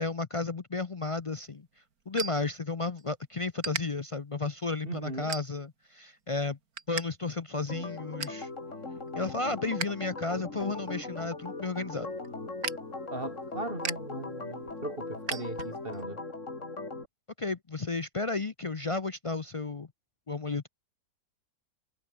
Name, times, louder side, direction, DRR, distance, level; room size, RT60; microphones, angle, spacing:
voice 1, 0.0-1.7 2.1-6.6 6.9-8.5 9.1-12.1 17.4-19.9 20.3-20.7, left 3 dB, 40° left, 0.5 m, -33 dB
sound 1, 1.0-3.1 3.6-3.8 4.4-4.6 5.3-5.9 6.2-7.1 7.3-7.4 7.8-8.5 8.9-10.0 10.3-16.0, right 5 dB, 85° right, 2.6 m, -39 dB
voice 2, 4.8-5.3 13.1-16.2, right 2 dB, 40° right, 4.8 m, -38 dB
Organ, 7.7-17.0, left 3 dB, 55° left, 4.1 m, -39 dB
omnidirectional pair, 1.5 m